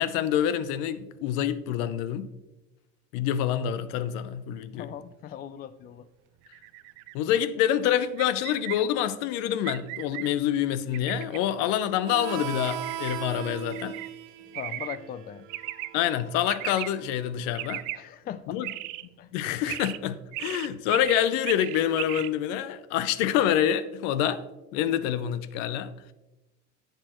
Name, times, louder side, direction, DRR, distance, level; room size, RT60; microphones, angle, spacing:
voice 1, 0.0-2.3 3.1-4.9 7.1-14.0 15.9-17.8 18.5-18.7 19.3-24.4 24.7-25.9, left 10 dB, 80° left, 0.7 m, -27 dB
voice 2, 4.7-6.1 14.4-15.5 17.9-18.6 19.2-19.3, left 10 dB, 30° left, 0.4 m, -39 dB
sound 1, 6.5-7.1 8.2-8.8 9.6-10.3 10.9-11.4 12.6-13.2 13.7-14.1 14.5-15.0 15.5-15.9 16.5-16.9 17.5-18.0 18.6-19.1 19.7-20.0 20.3-22.3, right 18 dB, 70° right, 0.5 m, -36 dB
Harmonica, 12.0-17.3, right 11 dB, 90° right, 1.1 m, -39 dB
10.0 x 7.9 x 3.0 m
supercardioid pair, 120°, 32 cm